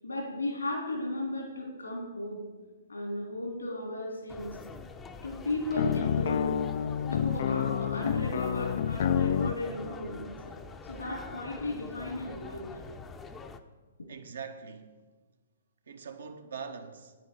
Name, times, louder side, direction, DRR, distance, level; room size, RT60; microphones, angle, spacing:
voice 1, 0.0-2.4 2.9-4.6 5.2-6.6 7.1-10.5 10.9-12.8, left 2 dB, 90° left, 3.5 m, -35 dB
sound 1, 4.3-13.6, left 4 dB, 15° left, 0.6 m, -45 dB
sound 2, 5.7-9.6, left 8 dB, 55° left, 0.3 m, -28 dB
voice 2, 14.1-15.0 15.9-17.2, right 6 dB, 70° right, 1.1 m, -42 dB
9.6 x 9.0 x 4.7 m
figure-of-eight pair, 125°, 0 cm